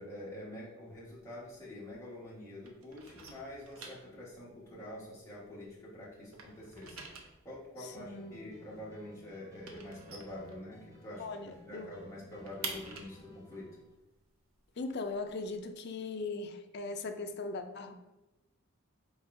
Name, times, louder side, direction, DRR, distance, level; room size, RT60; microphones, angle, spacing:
voice 1, 0.0-11.3 11.7-13.7, left 1 dB, 15° left, -8 dB, 1.2 m, -46 dB
sound 1, 0.9-2.3 2.6-5.8 6.1-11.1 11.5-11.6 11.9-15.6, right 4 dB, 70° right, 0.6 m, -48 dB
voice 2, 7.8-8.4 11.2-11.9 14.8-17.9, left 3 dB, 50° left, 7 dB, 0.4 m, -39 dB
sound 2, 7.9-13.9, right 1 dB, 15° right, 0.5 m, -56 dB
4.5 x 3.8 x 2.5 m, 1.0 s
head